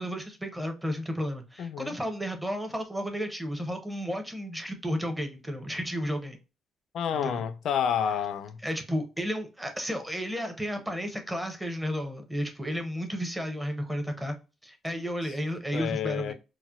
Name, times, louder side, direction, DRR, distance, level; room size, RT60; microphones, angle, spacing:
voice 1, 0.0-6.4 7.1-7.4 8.6-14.4 14.6-16.3, equal, 10° right, 0.8 m, -32 dB
voice 2, 1.6-2.0 6.9-8.6 15.7-16.3, left 8 dB, 70° left, 0.3 m, -29 dB
4.1 x 2.1 x 2.3 m
cardioid pair, 90°, 0 cm